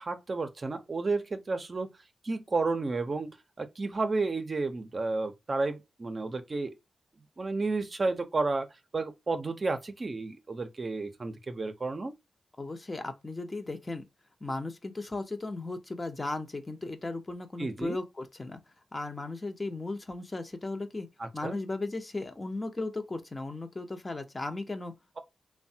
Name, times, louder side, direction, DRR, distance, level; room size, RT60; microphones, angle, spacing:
voice 1, 0.0-1.9 2.2-3.3 3.6-6.8 7.4-8.7 8.9-12.1 17.6-18.0 21.2-21.6, right 3 dB, 45° right, 0.6 m, -31 dB
voice 2, 12.6-14.0 14.4-18.6 18.9-21.1 21.3-25.2, left 2 dB, 30° left, 0.7 m, -36 dB
3.1 x 2.2 x 2.7 m
cardioid pair, 60°, 0 cm